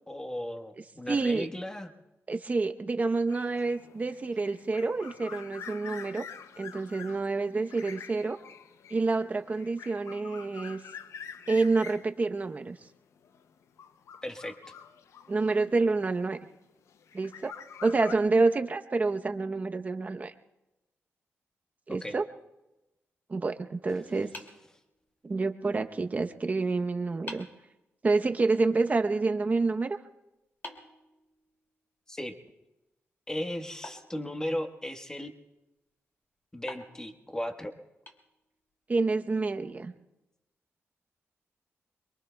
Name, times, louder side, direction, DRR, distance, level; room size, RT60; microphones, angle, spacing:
voice 1, 0.1-1.9 14.2-14.6 21.9-22.2 32.1-32.3 33.3-35.3 36.5-37.7, left 1 dB, 15° left, 6 dB, 1.3 m, -36 dB
voice 2, 1.1-1.5 2.3-6.2 6.6-8.4 8.9-10.8 11.5-12.8 15.3-16.4 17.1-17.5 17.8-20.3 21.9-22.3 23.3-24.3 25.2-27.4 28.0-30.0 38.9-39.9, right 3 dB, 35° right, 7 dB, 0.8 m, -28 dB
sound 1, 3.3-16.2 16.9-18.1, left 7 dB, 85° left, 0.6 m, -47 dB
sound 2, 24.3-25.4 26.7-26.8 27.3-27.7 30.6-31.8 33.8-34.9 36.7-38.7, left 2 dB, 45° left, 2.4 m, -48 dB
28.0 x 22.5 x 2.3 m, 0.98 s
cardioid pair, 100°, 5 cm